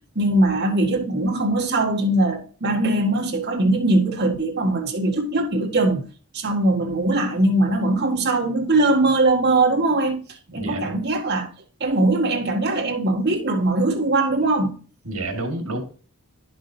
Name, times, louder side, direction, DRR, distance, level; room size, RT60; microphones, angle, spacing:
voice 1, 0.2-6.0 6.3-10.2 10.5-11.5 11.8-14.8, right 2 dB, 50° right, 1.7 m, -21 dB
voice 2, 10.5-11.0 15.0-15.8, right 2 dB, 80° right, 2.1 m, -29 dB
11.0 x 6.1 x 2.7 m
head